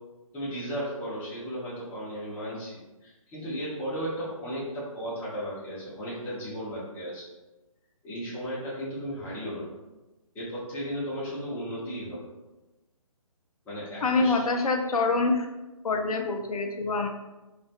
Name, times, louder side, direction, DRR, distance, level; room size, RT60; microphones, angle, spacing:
voice 1, 0.3-7.2 8.0-9.7 10.3-12.3 13.6-14.6, equal, 10° left, -9 dB, 0.7 m, -35 dB
voice 2, 14.0-15.5 15.8-17.1, left 3 dB, 85° left, 4 dB, 0.4 m, -25 dB
2.3 x 2.1 x 2.7 m, 1.1 s
figure-of-eight pair, 150°, 19 cm